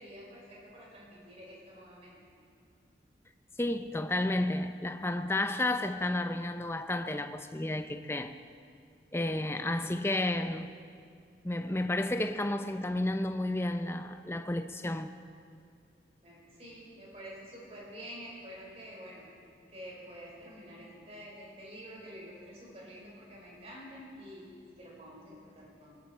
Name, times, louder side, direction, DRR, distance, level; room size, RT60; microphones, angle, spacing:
voice 1, 0.0-2.2 16.2-19.3 19.7-26.0, equal, 35° right, 4.9 m, -48 dB
voice 2, 3.6-8.3 9.1-10.7 11.4-15.1, left 1 dB, 15° left, 0.6 m, -31 dB
23.5 x 13.0 x 4.4 m
head